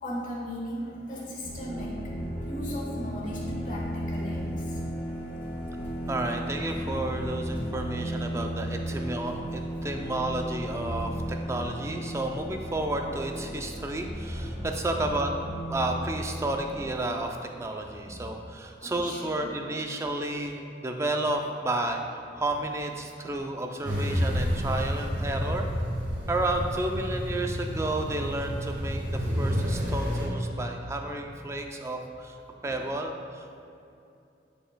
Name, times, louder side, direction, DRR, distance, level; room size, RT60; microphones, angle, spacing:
voice 1, 0.0-4.8 8.6-8.7 18.0-18.3 18.8-19.5 32.6-32.8, equal, 45° left, -4 dB, 1.3 m, -37 dB
sound 1, 1.4-16.8, equal, 15° left, 1.4 m, -34 dB
voice 2, 6.1-15.4 15.7-25.7 26.3-32.4 32.6-33.6, right 2 dB, 15° right, 3 dB, 0.3 m, -32 dB
sound 2, 23.8-30.3, equal, 45° right, 1.1 m, -29 dB
8.7 x 5.0 x 2.2 m, 2.6 s
head